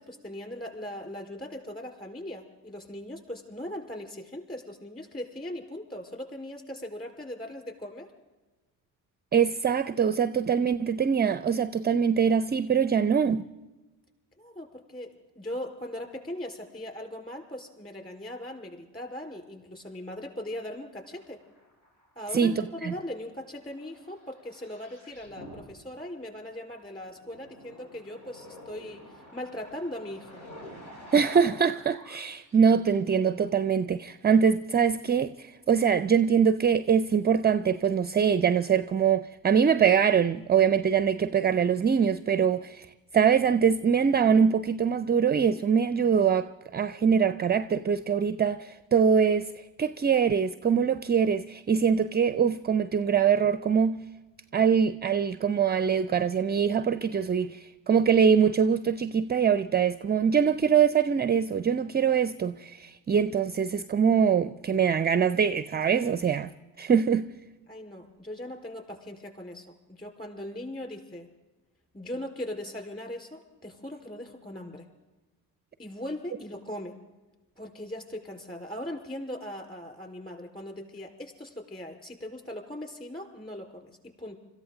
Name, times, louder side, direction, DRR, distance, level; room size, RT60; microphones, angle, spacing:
voice 1, 0.0-8.1 14.4-21.4 22.2-30.4 67.7-71.3 71.9-74.9 75.8-76.9 77.6-84.4, left 1 dB, 20° left, 4.4 m, -39 dB
voice 2, 9.3-13.4 22.3-22.9 31.1-42.9 43.1-49.5 49.8-54.1 54.5-66.5 66.8-67.3, right 7 dB, 20° right, 0.4 m, -23 dB
sound 1, 21.2-22.6 23.0-26.3 27.0-32.9 34.2-34.3, left 1 dB, 70° left, 4.8 m, -48 dB
25.5 x 14.0 x 3.9 m
hypercardioid pair, 50°, 49 cm